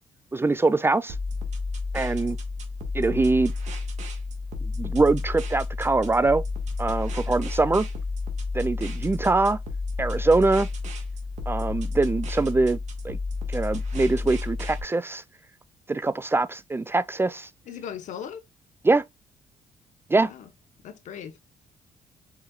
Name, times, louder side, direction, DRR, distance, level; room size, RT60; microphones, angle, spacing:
voice 1, 0.3-1.2 1.9-2.4 2.9-3.5 4.6-6.4 6.8-7.9 8.5-9.6 10.0-10.7 11.5-12.8 13.0-13.2 13.5-15.2 15.9-17.5 18.8-19.0 20.1-20.3, right 3 dB, 20° right, 0.4 m, -23 dB
sound 1, 1.1-14.8, left 3 dB, 65° right, 1.6 m, -31 dB
voice 2, 17.7-18.4 20.2-20.5 20.8-21.5, left 8 dB, 75° left, 1.0 m, -38 dB
5.0 x 4.2 x 2.3 m
cardioid pair, 80°, 13 cm